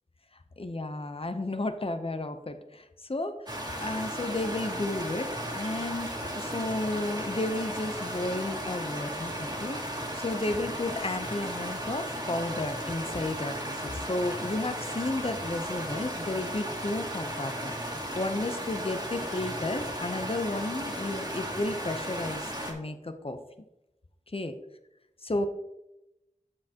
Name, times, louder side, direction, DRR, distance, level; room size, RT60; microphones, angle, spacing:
voice 1, 0.6-3.5 3.8-23.4 24.3-24.5 25.2-25.5, left 2 dB, 45° left, 8 dB, 0.7 m, -33 dB
sound 1, 3.5-22.7, equal, 30° right, 1.9 m, -35 dB
8.4 x 7.4 x 2.9 m, 0.90 s
wide cardioid pair, 40°, 14 cm